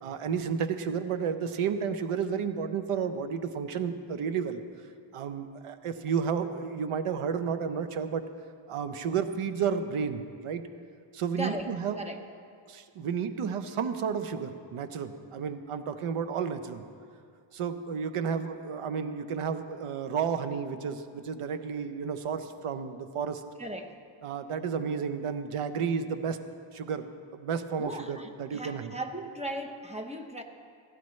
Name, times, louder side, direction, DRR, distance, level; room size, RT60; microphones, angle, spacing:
voice 1, 0.0-4.6 5.1-8.2 8.7-10.6 11.1-12.0 12.7-16.8 17.5-23.4 24.2-26.4 26.7-27.0 27.3-28.9, right 6 dB, 85° right, 9 dB, 0.8 m, -32 dB
voice 2, 11.4-11.7 11.9-12.2 23.6-24.0 27.8-30.4, right 1 dB, 15° right, 4 dB, 0.9 m, -37 dB
16.0 x 15.5 x 3.2 m, 2.3 s
wide cardioid pair, 115°, 50 cm